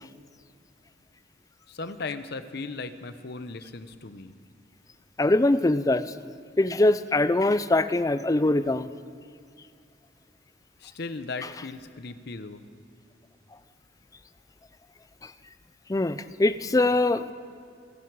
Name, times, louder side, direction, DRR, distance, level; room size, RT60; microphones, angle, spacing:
voice 1, 1.7-4.3 10.8-12.6, left 3 dB, 55° left, 11 dB, 0.8 m, -37 dB
voice 2, 5.2-6.1 6.6-8.9 15.2-15.3 15.9-17.3, left 2 dB, 20° left, 14 dB, 0.4 m, -23 dB
27.5 x 11.0 x 4.7 m, 2.4 s
head